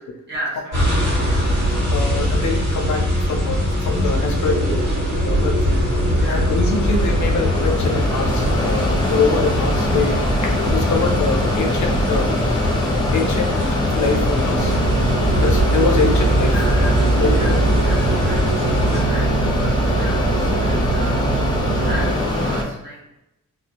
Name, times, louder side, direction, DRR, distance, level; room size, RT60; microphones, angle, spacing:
voice 1, 0.3-1.5 6.1-6.5 16.4-17.5 17.8-21.2 21.8-23.0, equal, 35° right, -8 dB, 0.9 m, -34 dB
sound 1, 0.7-19.0, equal, 65° right, 1.5 m, -22 dB
voice 2, 1.9-4.9 5.2-5.6 6.3-12.3 13.1-13.6 13.9-14.8 15.4-16.5 17.2-17.6, left 4 dB, 65° left, 3 dB, 0.5 m, -24 dB
Mechanisms, 4.6-22.6, left 1 dB, 15° left, 0.5 m, -23 dB
sound 2, 14.5-22.1, right 4 dB, 85° right, 0.5 m, -22 dB
2.5 x 2.3 x 2.8 m, 0.87 s
wide cardioid pair, 150°, 32 cm